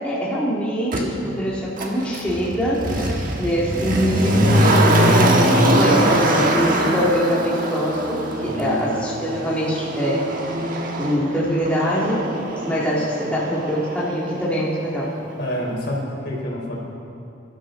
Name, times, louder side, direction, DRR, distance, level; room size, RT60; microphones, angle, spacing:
voice 1, 0.0-10.3 11.0-12.3 12.7-15.1, equal, 5° left, -7 dB, 2.1 m, -23 dB
Motor vehicle (road), 0.9-1.0 1.8-14.7 15.0-15.1, right 1 dB, 45° right, 1.4 m, -22 dB
voice 2, 8.5-9.0 15.4-16.8, equal, 60° left, -3 dB, 3.8 m, -28 dB
25.5 x 12.5 x 3.8 m, 2.6 s
head